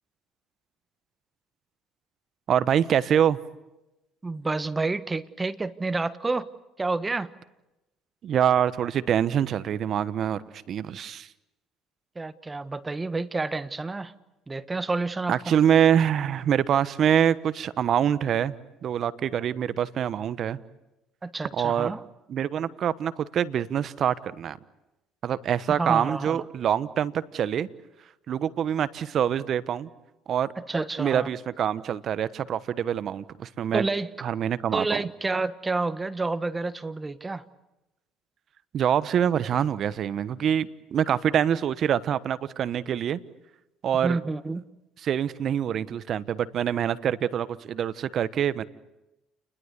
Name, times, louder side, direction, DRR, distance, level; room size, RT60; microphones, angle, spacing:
voice 1, 2.5-3.4 8.2-11.3 15.3-18.5 18.8-20.6 21.5-21.9 22.3-24.6 25.2-27.7 28.3-29.9 30.3-30.5 31.0-33.8 34.2-35.0 38.7-43.2 43.8-44.2 45.0-48.6, right 9 dB, 55° right, 15 dB, 1.1 m, -25 dB
voice 2, 4.2-6.5 6.8-7.3 12.1-14.1 14.5-15.5 21.2-22.0 25.7-26.4 30.7-31.3 33.7-34.1 34.7-37.4 44.0-44.6, right 3 dB, 20° right, 13 dB, 1.3 m, -29 dB
29.5 x 21.5 x 8.3 m, 0.98 s
supercardioid pair, 70°, 0 cm